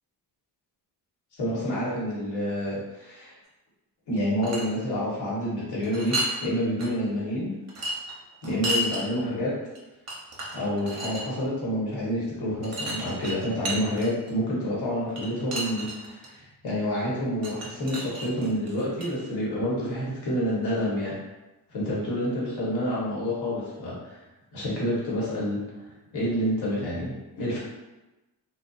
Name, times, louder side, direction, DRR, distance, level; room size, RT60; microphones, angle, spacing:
voice 1, 1.3-3.3 4.1-7.5 8.4-9.5 10.5-21.1 21.7-24.1 24.5-25.6 26.1-27.6, equal, 65° left, -7 dB, 1.2 m, -28 dB
sound 1, 4.2-4.7 5.8-6.4 6.8-6.9 7.7-9.0 9.7-9.8 10.1-11.2 12.6-14.3 15.2-16.3 17.4-19.1, right 1 dB, 40° right, 0.7 m, -32 dB
2.5 x 2.3 x 2.4 m, 1.1 s
cardioid pair, 75°, 42 cm